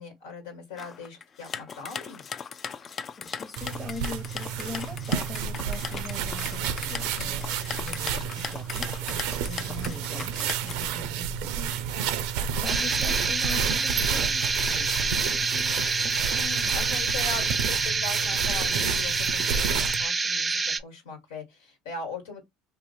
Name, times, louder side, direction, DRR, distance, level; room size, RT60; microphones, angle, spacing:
voice 1, 0.0-2.2 7.1-7.4 11.9-12.2 16.3-22.4, left 3 dB, 85° left, 1.6 m, -40 dB
sound 1, 0.8-11.1, left 6 dB, 40° left, 0.4 m, -38 dB
voice 2, 2.7-12.2 12.6-16.2, left 3 dB, 15° left, 1.0 m, -42 dB
sound 2, 3.6-20.0, right 8 dB, 75° right, 0.5 m, -31 dB
sound 3, 12.6-20.8, right 4 dB, 20° right, 0.5 m, -27 dB
2.8 x 2.4 x 4.1 m
supercardioid pair, 85°, 0 cm